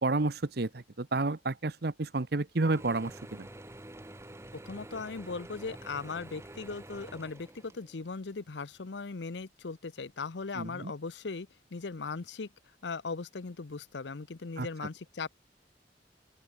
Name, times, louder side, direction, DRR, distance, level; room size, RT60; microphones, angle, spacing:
voice 1, 0.0-3.5 10.5-10.9 14.6-14.7, right 3 dB, 60° right, 0.9 m, -30 dB
Mechanisms / Drill, 2.6-8.1, right 1 dB, 15° right, 1.1 m, -48 dB
voice 2, 4.7-12.5 12.8-15.3, left 4 dB, 80° left, 0.7 m, -38 dB
open air
head